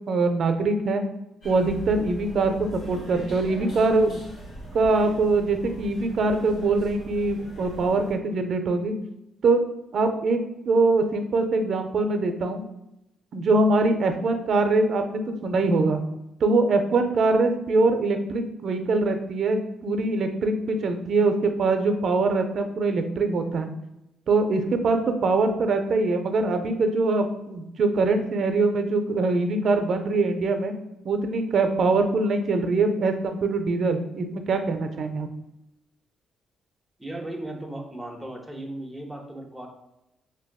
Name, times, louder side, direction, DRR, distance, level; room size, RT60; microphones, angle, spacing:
voice 1, 0.1-1.0 1.4-4.2 4.7-8.9 9.4-9.6 9.9-10.4 10.7-12.6 13.3-16.0 16.4-23.7 24.3-30.7 31.0-35.3, right 3 dB, 60° right, 7 dB, 0.4 m, -23 dB
sound 1, 1.4-8.1, right 1 dB, 85° left, 1.4 m, -41 dB
voice 2, 37.0-39.7, right 1 dB, 5° right, 1 dB, 0.6 m, -36 dB
3.5 x 2.6 x 2.2 m, 0.88 s
cardioid pair, 90°, 0 cm